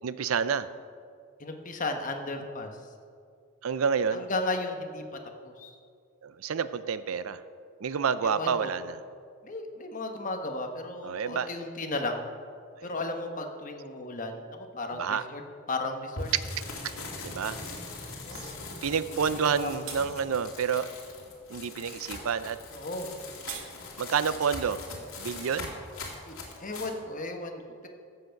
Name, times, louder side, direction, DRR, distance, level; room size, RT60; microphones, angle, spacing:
voice 1, 0.0-0.7 3.6-4.3 6.2-7.4 7.8-9.0 11.0-11.5 15.0-15.2 17.2-17.6 18.4-18.5 18.8-20.9 21.5-22.6 24.0-24.8 25.2-25.7, right 6 dB, 80° right, 14 dB, 0.5 m, -29 dB
voice 2, 1.4-2.7 4.1-5.0 5.4-5.7 8.2-8.7 9.4-12.3 12.8-15.4 15.7-16.3 18.2-18.6 19.6-19.7 22.7-23.2 26.2-26.3 26.6-27.9, left 2 dB, 40° left, 4 dB, 1.1 m, -34 dB
sound 1, 16.2-26.9, left 3 dB, 80° left, 2.4 m, -41 dB
sound 2, 19.3-19.5 19.8-20.0 23.0-23.7, right 7 dB, 65° right, 1.1 m, -40 dB
13.5 x 7.9 x 5.8 m, 2.2 s
head